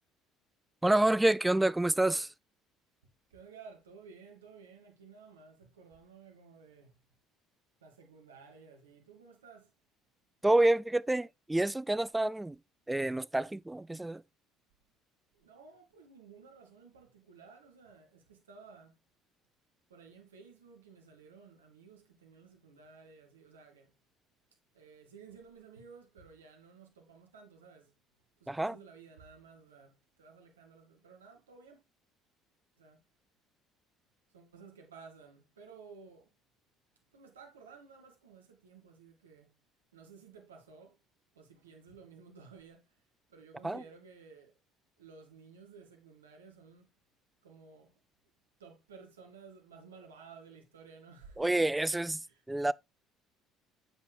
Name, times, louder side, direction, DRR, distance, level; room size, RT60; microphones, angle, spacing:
voice 1, 0.8-2.3 10.4-12.6 12.9-14.2 28.5-28.8 43.6-43.8 51.4-52.7, right 1 dB, 10° right, 0.4 m, -28 dB
voice 2, 3.3-7.0 7.8-9.7 15.3-19.0 19.9-23.9 24.7-27.9 28.4-31.8 32.8-33.0 34.3-36.3 37.1-39.6 39.9-41.0 41.3-43.0 43.3-44.5 45.0-46.9 47.4-47.9 48.6-51.7 52.2-52.4, right 5 dB, 85° right, 2.0 m, -55 dB
9.9 x 7.5 x 2.2 m
hypercardioid pair, 60°, 0 cm